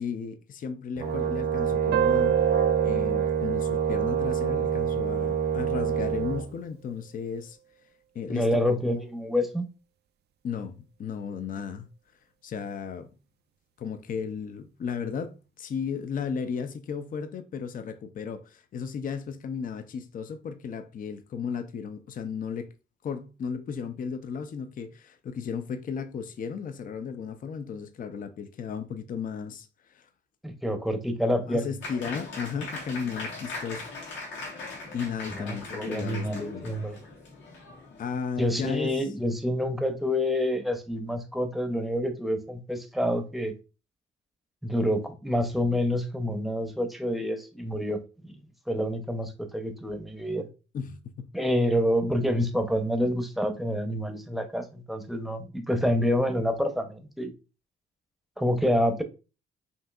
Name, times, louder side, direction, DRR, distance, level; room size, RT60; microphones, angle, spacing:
voice 1, 0.0-2.4 2.8-7.6 8.1-9.0 10.4-11.9 12.4-13.1 13.8-22.7 23.0-30.1 31.5-33.8 34.9-36.7 38.0-39.0 50.7-51.3, left 6 dB, 45° left, 0.5 m, -35 dB
Brass instrument, 1.0-6.5, right 8 dB, 80° right, 1.0 m, -26 dB
sound 1, 1.9-5.1, right 9 dB, 55° right, 0.4 m, -30 dB
voice 2, 8.3-9.7 30.4-31.7 35.3-37.0 38.4-43.5 44.6-48.4 48.7-50.5 51.3-57.3 58.4-59.0, equal, ahead, 0.7 m, -27 dB
Applause, 31.8-38.2, left 3 dB, 70° left, 1.6 m, -40 dB
5.4 x 2.7 x 2.4 m
cardioid pair, 90°, 20 cm